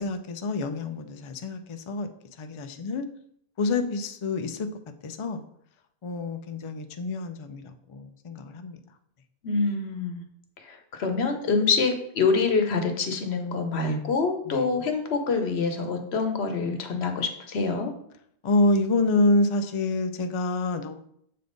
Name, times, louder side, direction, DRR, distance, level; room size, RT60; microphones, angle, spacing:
voice 1, 0.0-2.1 2.4-3.1 3.6-4.7 5.0-5.4 6.0-7.6 7.9-8.8 14.5-14.6 18.4-21.0, left 2 dB, 45° left, 7 dB, 0.4 m, -27 dB
voice 2, 9.4-10.2 10.6-17.9, left 4 dB, 90° left, 6 dB, 1.1 m, -26 dB
7.5 x 3.5 x 3.9 m, 0.70 s
omnidirectional pair, 1.0 m